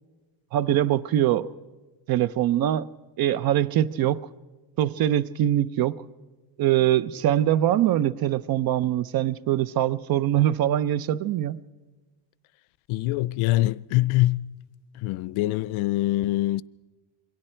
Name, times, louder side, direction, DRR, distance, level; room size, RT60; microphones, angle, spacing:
voice 1, 0.5-1.5 2.1-2.9 3.2-4.2 4.8-6.0 6.6-11.6, right 12 dB, 50° right, 0.6 m, -23 dB
voice 2, 12.9-14.6 15.0-16.6, left 17 dB, 85° left, 0.6 m, -24 dB
27.5 x 23.0 x 4.4 m
cardioid pair, 170°, 48 cm